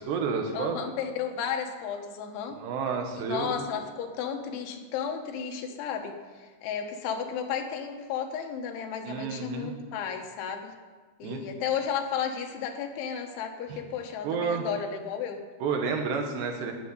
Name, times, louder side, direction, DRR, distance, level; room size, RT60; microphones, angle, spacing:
voice 1, 0.0-0.8 2.6-3.6 9.1-9.7 11.2-11.4 13.7-13.8 14.2-14.7 15.6-16.7, right 5 dB, 70° right, 4 dB, 3.4 m, -30 dB
voice 2, 0.5-2.6 3.2-10.7 11.2-15.4, left 7 dB, 85° left, 4 dB, 3.6 m, -33 dB
11.5 x 8.5 x 9.7 m, 1.4 s
omnidirectional pair, 5.2 m